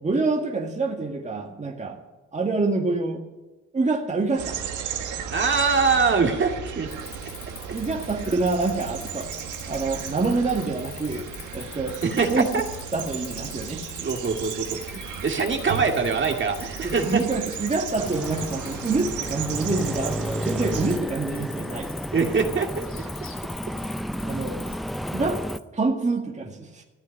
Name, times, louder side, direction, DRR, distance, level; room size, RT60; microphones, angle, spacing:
voice 1, 0.0-2.0 2.3-3.2 3.7-4.6 7.7-9.3 9.7-11.3 11.5-12.0 12.3-12.5 12.9-13.8 16.8-21.9 24.2-24.6 25.1-25.4 25.7-26.8, right 3 dB, 25° right, 1 dB, 2.0 m, -26 dB
sound 1, 4.4-21.0, right 7 dB, 80° right, 1.8 m, -35 dB
voice 2, 5.3-6.9 12.0-12.7 14.0-17.2 22.1-22.8, right 5 dB, 40° right, 3 dB, 2.2 m, -23 dB
Cricket, 6.9-25.6, left 6 dB, 45° left, 2.0 m, -43 dB
sound 2, 18.0-25.6, equal, ahead, 0.5 m, -32 dB
14.5 x 8.5 x 9.4 m, 1.1 s
cardioid pair, 90°, 30 cm